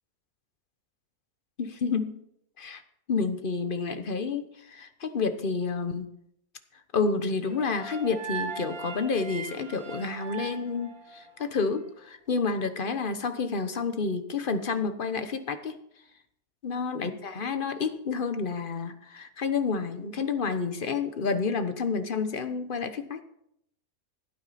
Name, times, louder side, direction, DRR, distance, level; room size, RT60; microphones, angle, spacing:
voice 1, 1.6-2.2 2.6-2.8 3.1-6.1 6.9-15.8 16.6-23.2, left 4 dB, 40° left, 9 dB, 1.0 m, -29 dB
sound 1, 7.4-11.6, right 5 dB, 65° right, 2.7 m, -39 dB
16.5 x 9.4 x 4.2 m, 0.73 s
omnidirectional pair, 1.6 m